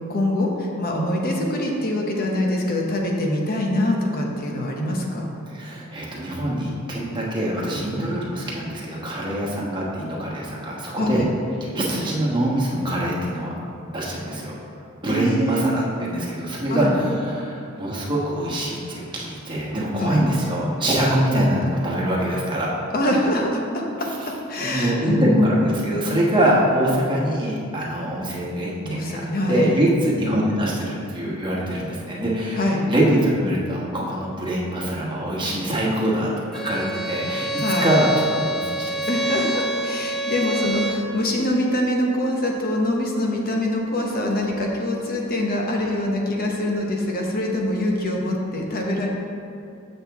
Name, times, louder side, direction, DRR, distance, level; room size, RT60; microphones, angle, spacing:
voice 1, 0.1-5.3 11.0-11.3 15.1-15.9 16.7-17.0 20.0-20.2 22.9-23.8 24.5-25.5 28.8-29.7 32.6-32.8 37.6-37.9 39.1-49.1, left 1 dB, 45° left, 0 dB, 0.9 m, -24 dB
voice 2, 5.5-11.3 11.6-13.5 13.9-14.5 15.0-22.7 24.6-37.5 37.8-39.1, right 1 dB, 20° right, -4 dB, 1.2 m, -24 dB
Bowed string instrument, 36.5-41.1, right 1 dB, ahead, 0.4 m, -27 dB
7.2 x 6.5 x 3.5 m, 2.6 s
head